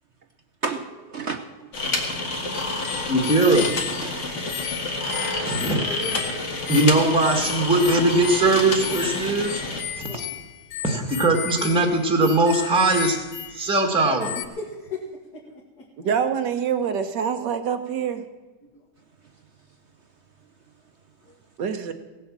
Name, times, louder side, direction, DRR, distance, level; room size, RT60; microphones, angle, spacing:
voice 1, 0.6-2.1 2.4-2.9 4.0-4.2 10.1-10.3, right 4 dB, 55° right, 7 dB, 0.8 m, -34 dB
sound 1, 1.7-9.8, left 2 dB, 45° left, 2.1 m, -29 dB
sound 2, 2.5-13.9 14.2-14.5, left 12 dB, 85° left, 1.3 m, -35 dB
voice 2, 3.1-3.7 5.4-5.8 6.7-9.6 10.0-10.1 10.8-13.2 13.5-14.4, right 2 dB, 5° right, 3 dB, 1.4 m, -20 dB
voice 3, 5.7-6.3 10.0-10.3 14.6-15.0 15.3-15.9 18.7-18.8 21.3-21.4, left 3 dB, 65° left, -4 dB, 2.4 m, -36 dB
voice 4, 16.0-18.2 21.6-21.9, right 7 dB, 75° right, 8 dB, 1.7 m, -25 dB
17.0 x 7.8 x 7.5 m, 1.2 s
omnidirectional pair, 1.9 m